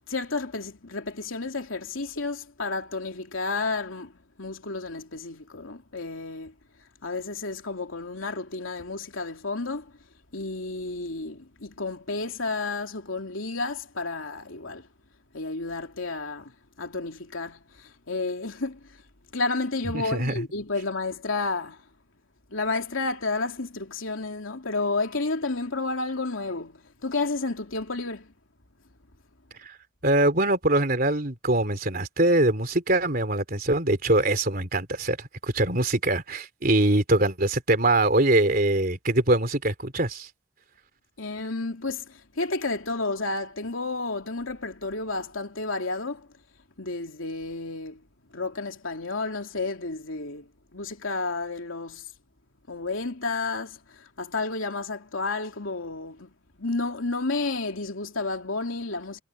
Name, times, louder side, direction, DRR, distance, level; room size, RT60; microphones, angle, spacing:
voice 1, 0.1-6.5 7.0-9.9 10.3-14.9 15.3-16.5 16.8-19.0 19.3-21.8 22.5-28.3 41.2-46.3 46.8-48.0 48.3-52.1 52.7-56.3 56.6-59.2, left 3 dB, 85° left, 2.9 m, -31 dB
voice 2, 19.9-20.3 29.6-29.8 30.0-40.3, right 2 dB, 45° right, 3.5 m, -23 dB
head